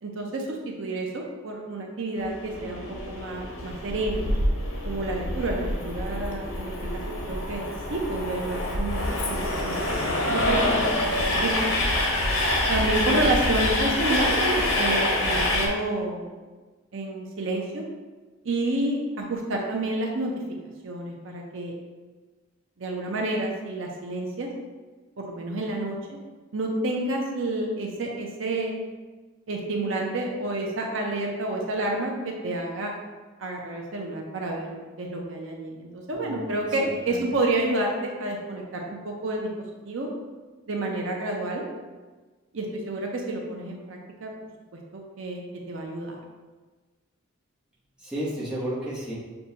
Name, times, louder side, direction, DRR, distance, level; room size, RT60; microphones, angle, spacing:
voice 1, 0.0-4.3 4.8-11.5 12.7-16.3 16.9-17.9 18.4-20.3 20.8-21.7 22.8-24.5 25.2-26.2 26.5-28.7 29.5-32.9 33.4-39.5 39.9-40.1 40.7-41.6 42.5-44.3 44.9-46.2, right 2 dB, 70° right, 0 dB, 0.6 m, -29 dB
Train, 2.2-15.7, left 1 dB, 85° left, 0.8 m, -26 dB
voice 2, 36.1-37.2 48.0-49.1, equal, 5° right, -8 dB, 0.9 m, -33 dB
6.6 x 2.3 x 2.8 m, 1.3 s
head